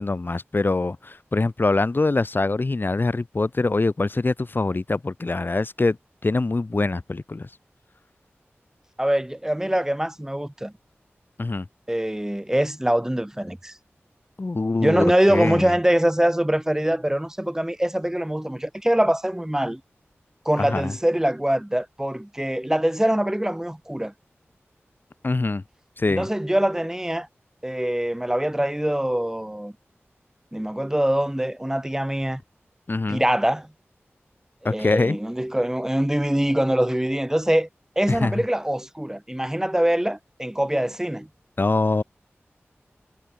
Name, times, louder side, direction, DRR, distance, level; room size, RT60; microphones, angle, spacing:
voice 1, 0.0-6.0 6.2-7.5 11.4-11.7 14.4-15.7 20.6-20.9 25.2-25.6 26.0-26.3 32.9-33.2 34.6-35.2 38.1-38.3 41.6-42.0, left 3 dB, 45° left, 2.1 m, -24 dB
voice 2, 9.0-10.7 11.9-13.8 14.8-19.8 20.4-24.1 26.1-27.3 27.6-29.7 30.5-32.4 33.1-33.7 34.7-37.7 37.9-41.3, right 1 dB, 10° right, 6.5 m, -23 dB
wide cardioid pair, 65°, 5 cm